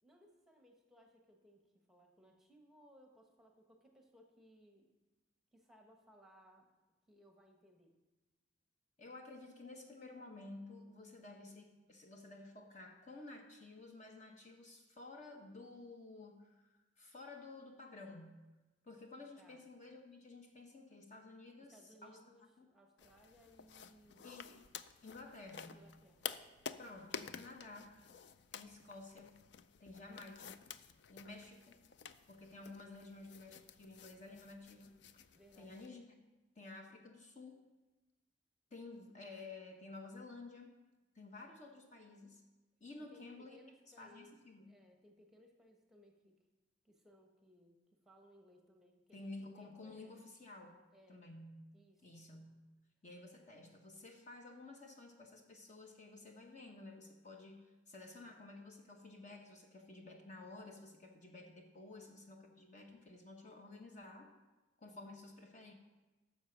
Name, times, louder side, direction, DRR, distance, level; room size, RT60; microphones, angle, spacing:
voice 1, 0.0-4.9 5.5-6.7 7.1-7.9 19.4-19.7 21.6-24.4 25.7-26.3 31.1-31.4 35.3-35.8 43.0-46.3 46.8-50.1 50.9-51.2 51.7-52.2 53.2-53.3, equal, ahead, 2 dB, 1.1 m, -64 dB
voice 2, 9.0-18.4 18.8-22.2 22.6-22.7 24.2-24.6 25.0-25.9 26.8-27.9 28.5-29.3 29.8-30.6 31.1-31.7 32.3-35.0 35.6-36.3 36.6-37.6 38.7-40.7 41.1-42.4 42.8-43.6 44.0-44.7 49.1-50.8 51.1-51.6 52.0-52.7 53.0-64.3 64.8-65.7, left 2 dB, 40° left, 2 dB, 0.9 m, -53 dB
sound 1, 23.0-35.9, left 7 dB, 60° left, 0.4 m, -51 dB
9.9 x 6.9 x 5.9 m, 1.2 s
head